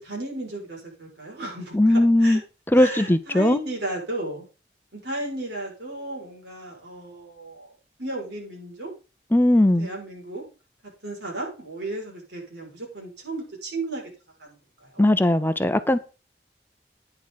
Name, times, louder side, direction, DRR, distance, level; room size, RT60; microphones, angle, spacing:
voice 1, 0.0-2.4 2.7-4.5 4.9-7.7 8.0-8.9 9.8-10.4 11.0-14.1 14.4-15.0, right 2 dB, 85° right, 6.1 m, -34 dB
voice 2, 1.7-2.4 2.7-3.6 9.3-9.9 15.0-16.0, left 1 dB, 10° left, 0.6 m, -18 dB
11.5 x 9.9 x 4.1 m
head